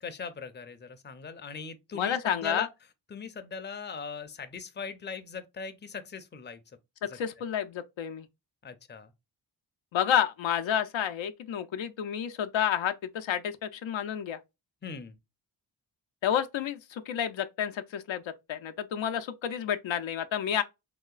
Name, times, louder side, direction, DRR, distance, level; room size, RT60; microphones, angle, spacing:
voice 1, 0.0-2.7 3.1-6.6 7.0-7.2 8.6-9.1 14.8-15.2, left 5 dB, 25° left, 0.5 m, -39 dB
voice 2, 1.9-2.7 7.1-8.3 9.9-14.4 16.2-18.2 18.5-20.6, left 9 dB, 75° left, 0.5 m, -30 dB
3.0 x 2.8 x 2.3 m
cardioid pair, 60°, 47 cm